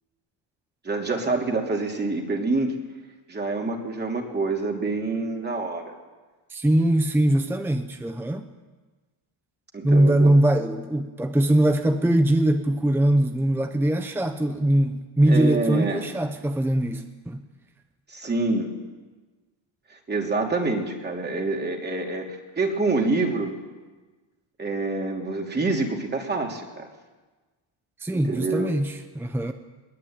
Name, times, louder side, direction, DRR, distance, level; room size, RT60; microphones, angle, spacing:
voice 1, 0.8-2.7 3.3-5.9 9.7-10.3 15.3-16.1 18.1-18.7 20.1-23.5 24.6-26.9 28.1-28.7, right 3 dB, 20° right, 2 dB, 3.0 m, -26 dB
voice 2, 6.5-8.4 9.8-17.4 28.0-29.5, right 1 dB, 5° right, 7 dB, 0.9 m, -22 dB
21.5 x 21.5 x 8.9 m, 1.3 s
cardioid pair, 165°, 46 cm